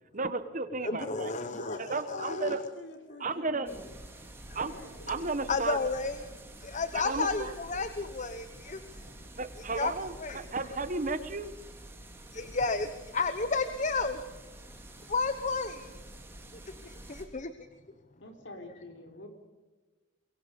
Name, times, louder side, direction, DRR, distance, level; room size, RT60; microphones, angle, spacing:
voice 1, 0.1-1.3 1.8-2.6 3.2-3.7 4.5-4.7 5.1-5.8 6.9-7.5 9.4-11.5, right 3 dB, 40° right, 12 dB, 1.2 m, -33 dB
voice 2, 0.8-2.5 5.5-6.3 6.6-9.1 9.8-9.9 10.2-10.4 12.3-12.9 13.1-14.2 15.1-16.0 16.7-17.5, left 4 dB, 40° left, 11 dB, 1.0 m, -32 dB
voice 3, 1.4-4.0 4.6-5.4 18.2-19.3, left 2 dB, 65° left, 5 dB, 4.2 m, -43 dB
sound 1, 3.7-17.3, right 1 dB, 10° right, 2.9 m, -48 dB
24.0 x 22.0 x 5.4 m, 1.3 s
head